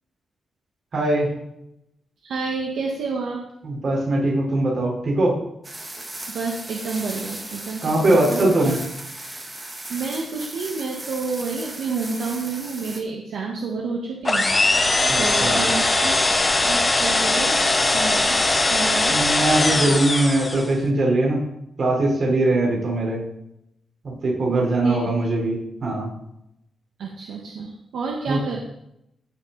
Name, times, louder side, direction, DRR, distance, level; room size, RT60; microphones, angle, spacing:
voice 1, 0.9-1.3 3.6-5.3 7.8-8.8 15.1-15.7 19.1-21.4 21.8-23.2 24.0-26.1 28.3-28.4, right 2 dB, 45° right, -3 dB, 3.9 m, -21 dB
voice 2, 2.2-3.4 6.3-8.8 9.9-14.5 15.2-16.3 16.6-17.6 17.9-18.4 18.7-19.1 24.5-25.1 27.0-28.6, right 4 dB, 75° right, 0 dB, 1.5 m, -29 dB
sound 1, 5.6-13.0, right 2 dB, 15° right, 1.3 m, -36 dB
sound 2, 14.2-20.8, left 2 dB, 20° left, 0.8 m, -20 dB
16.0 x 6.2 x 4.0 m, 0.81 s
wide cardioid pair, 175°, 0 cm